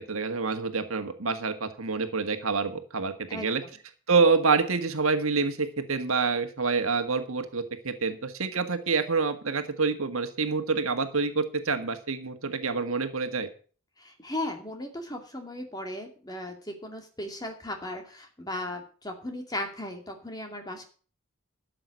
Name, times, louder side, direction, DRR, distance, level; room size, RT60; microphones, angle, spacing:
voice 1, 0.0-3.6 4.1-13.5, right 4 dB, 75° right, 7 dB, 1.6 m, -27 dB
voice 2, 14.0-20.9, left 1 dB, 20° left, 3 dB, 2.4 m, -36 dB
13.0 x 7.8 x 6.4 m, 0.40 s
head